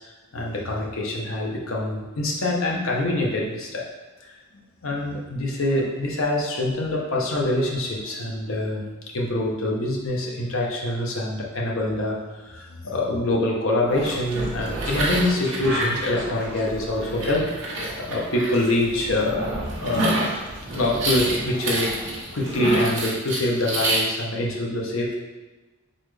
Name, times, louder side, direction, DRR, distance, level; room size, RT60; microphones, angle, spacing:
voice 1, 0.3-3.9 4.2-4.3 4.8-8.8 9.1-12.2 12.5-17.4 18.1-19.5 19.8-20.2 20.7-21.9 22.3-25.2, left 1 dB, 65° left, -2 dB, 0.8 m, -25 dB
sound 1, 13.9-24.0, right 1 dB, 55° right, 1.0 m, -28 dB
4.1 x 3.8 x 3.2 m, 1.2 s
head